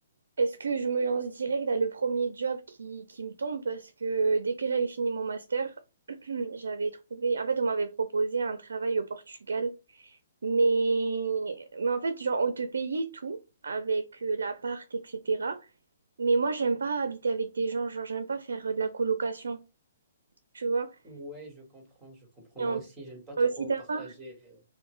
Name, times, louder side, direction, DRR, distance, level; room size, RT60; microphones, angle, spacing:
voice 1, 0.4-5.7 6.1-15.7 16.2-19.6 20.5-21.0 22.6-22.8 23.4-24.1, right 4 dB, 80° right, 0.4 m, -29 dB
voice 2, 21.0-24.6, right 1 dB, 10° right, 1.7 m, -45 dB
3.6 x 2.1 x 3.1 m
hypercardioid pair, 145°, 0 cm